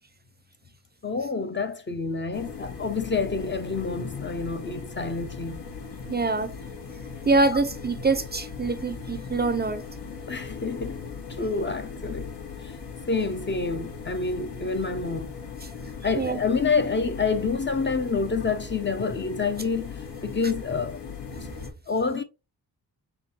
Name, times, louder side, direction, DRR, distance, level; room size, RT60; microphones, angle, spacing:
voice 1, 1.0-5.6 7.5-7.6 10.3-11.0 11.3-12.3 12.6-12.7 13.1-15.3 16.0-21.0 21.9-22.2, left 4 dB, 30° left, 0.5 m, -28 dB
sound 1, 2.3-21.7, left 5 dB, 85° left, 1.6 m, -38 dB
voice 2, 6.1-6.5 7.3-9.8 16.2-16.4, right 3 dB, 25° right, 0.4 m, -24 dB
4.3 x 3.7 x 2.8 m
wide cardioid pair, 135°, 40 cm